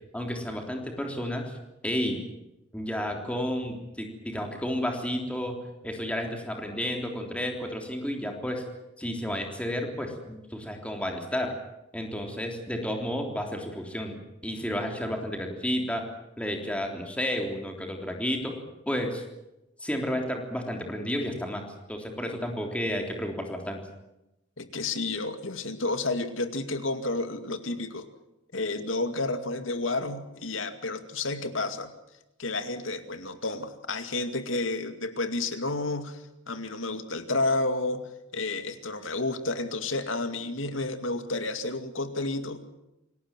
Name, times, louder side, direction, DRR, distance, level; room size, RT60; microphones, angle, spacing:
voice 1, 0.1-1.5 1.8-2.2 2.7-5.5 5.8-8.6 9.0-11.5 11.9-16.0 16.4-18.5 18.8-19.2 19.8-23.8, equal, 5° left, 2 dB, 3.5 m, -31 dB
voice 2, 24.6-28.1 28.5-31.9 32.4-42.6, left 2 dB, 85° left, 8 dB, 2.3 m, -31 dB
27.5 x 19.0 x 7.5 m, 0.91 s
head